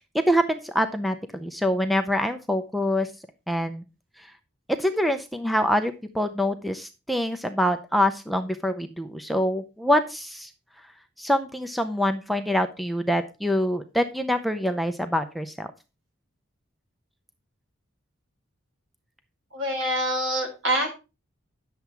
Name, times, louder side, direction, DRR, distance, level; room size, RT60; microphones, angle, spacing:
voice 1, 0.1-3.1 3.5-3.8 4.2-4.3 4.7-10.5 11.2-15.7, equal, ahead, 7 dB, 0.5 m, -25 dB
voice 2, 19.5-20.9, right 1 dB, 65° right, 4 dB, 3.5 m, -25 dB
9.9 x 7.0 x 4.5 m, 0.29 s
head